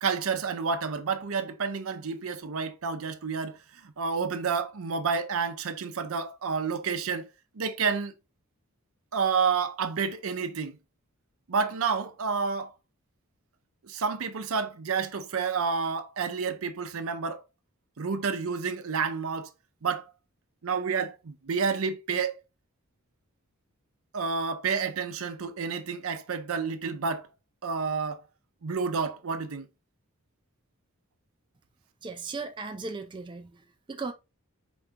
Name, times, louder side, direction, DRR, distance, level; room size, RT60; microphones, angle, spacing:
voice 1, 0.0-7.3 7.5-8.1 9.1-10.8 11.5-12.7 13.8-17.4 18.0-19.5 19.8-20.1 20.6-22.4 24.1-27.3 27.6-28.2 28.6-29.7, right 5 dB, 65° right, 0.6 m, -29 dB
voice 2, 32.0-34.1, right 4 dB, 20° right, 0.4 m, -37 dB
4.5 x 2.8 x 3.6 m
head